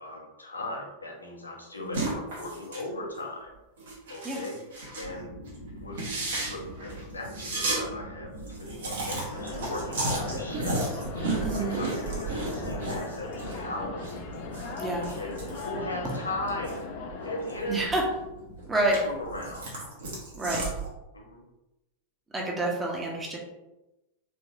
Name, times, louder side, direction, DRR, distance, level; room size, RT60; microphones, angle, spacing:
voice 1, 0.0-3.5 4.1-4.6 5.0-5.3 5.8-6.1 6.5-10.9 11.5-14.1 15.0-15.3 15.6-16.8 17.2-17.9 19.0-19.7 21.1-21.5, left 1 dB, 80° left, -1 dB, 0.8 m, -37 dB
sound 1, 1.9-2.9 3.1-3.3 3.8-5.1 5.5-5.6 5.9-7.8 8.1-8.2 8.4-13.6 13.9-16.8 17.2-18.2 18.6-20.9, right 2 dB, 60° right, 1.2 m, -33 dB
sound 2, 5.0-19.5, right 1 dB, 90° right, 1.4 m, -44 dB
sound 3, 9.3-17.6, left 4 dB, 45° left, 0.6 m, -39 dB
voice 2, 11.3-11.8 14.8-15.1 17.7-18.0 18.7-19.0 20.3-20.7 22.3-23.4, right 2 dB, 15° right, -1 dB, 1.0 m, -28 dB
3.8 x 3.5 x 2.7 m, 0.98 s
figure-of-eight pair, 90°, 0 cm